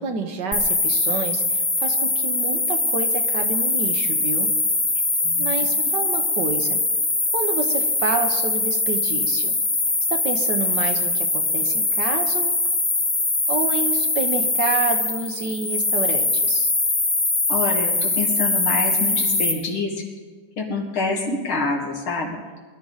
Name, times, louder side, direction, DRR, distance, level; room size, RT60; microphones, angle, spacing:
voice 1, 0.0-4.5 5.4-6.8 7.3-9.6 10.1-12.5 13.5-16.7, right 4 dB, 60° right, 5 dB, 1.6 m, -28 dB
sound 1, 0.5-19.5, left 2 dB, 25° left, 1.7 m, -22 dB
voice 2, 17.5-20.1 20.6-22.4, left 3 dB, 85° left, 0 dB, 2.9 m, -26 dB
21.0 x 12.0 x 4.0 m, 1.4 s
omnidirectional pair, 2.2 m